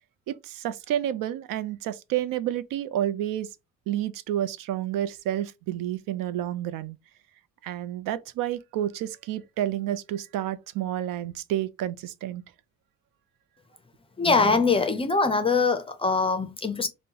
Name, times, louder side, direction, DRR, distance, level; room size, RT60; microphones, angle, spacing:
voice 1, 0.3-3.5 3.9-7.0 7.6-12.4, right 12 dB, 85° right, 0.5 m, -30 dB
voice 2, 14.2-16.9, left 4 dB, 20° left, 0.4 m, -23 dB
5.3 x 2.1 x 2.8 m
cardioid pair, 175°, 32 cm